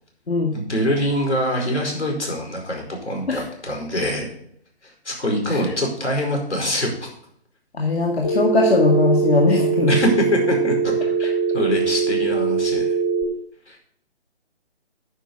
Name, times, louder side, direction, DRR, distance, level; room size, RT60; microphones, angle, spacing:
voice 1, 0.5-4.3 4.8-7.1 9.9-13.0 13.7-13.8, equal, 85° left, 0 dB, 4.8 m, -24 dB
voice 2, 7.7-10.0, left 3 dB, 65° left, 0 dB, 1.9 m, -19 dB
Telephone, 8.2-13.2, right 5 dB, 20° left, 1.1 m, -21 dB
10.0 x 5.6 x 7.0 m, 0.68 s
figure-of-eight pair, 155°, 34 cm